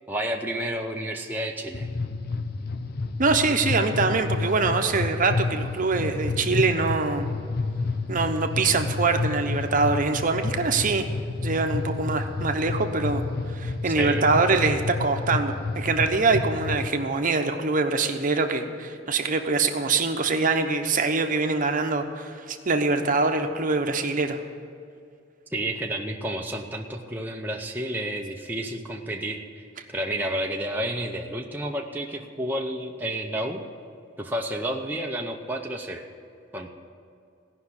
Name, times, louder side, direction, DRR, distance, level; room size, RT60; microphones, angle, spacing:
voice 1, 0.1-1.9 13.9-14.3 25.5-33.6 34.2-36.0 36.5-36.7, right 1 dB, 10° right, 0 dB, 0.7 m, -31 dB
sound 1, 1.7-16.9, left 3 dB, 50° left, 0.6 m, -30 dB
voice 2, 3.2-7.3 8.1-11.0 11.4-13.2 13.5-24.4, right 3 dB, 45° right, 6 dB, 0.9 m, -24 dB
16.5 x 5.9 x 9.7 m, 2.4 s
head